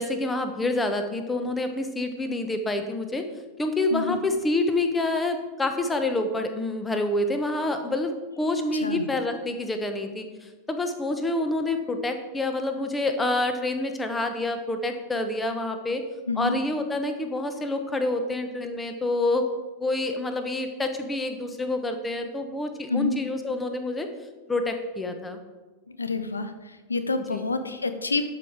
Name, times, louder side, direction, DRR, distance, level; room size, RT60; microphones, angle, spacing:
voice 1, 0.0-3.3 3.6-16.0 16.4-19.5 19.8-24.1 24.5-25.4 27.3-27.4, left 2 dB, 10° left, 7 dB, 1.1 m, -27 dB
voice 2, 16.3-16.6 22.9-23.1 26.0-28.2, left 3 dB, 75° left, 10 dB, 0.7 m, -28 dB
12.0 x 5.8 x 4.9 m, 1.2 s
figure-of-eight pair, 90°, 0 cm